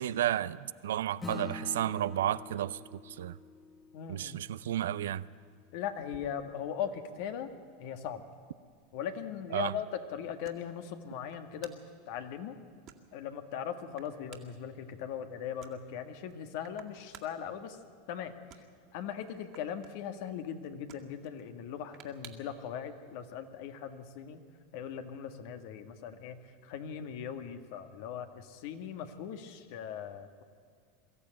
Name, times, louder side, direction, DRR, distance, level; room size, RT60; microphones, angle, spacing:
voice 1, 0.0-3.4 4.1-5.2 9.5-9.7, right 12 dB, 80° right, 0.5 m, -32 dB
Acoustic guitar / Strum, 1.2-6.0, left 4 dB, 15° left, 1.3 m, -46 dB
voice 2, 3.9-4.4 5.7-7.5 7.8-8.2 8.9-11.7 12.1-12.6 13.1-17.8 18.1-18.3 18.9-24.4 24.7-30.4, left 8 dB, 65° left, 1.7 m, -39 dB
sound 1, 6.0-22.7, right 10 dB, 50° right, 2.2 m, -59 dB
22.5 x 14.0 x 8.9 m
hypercardioid pair, 100°, 0 cm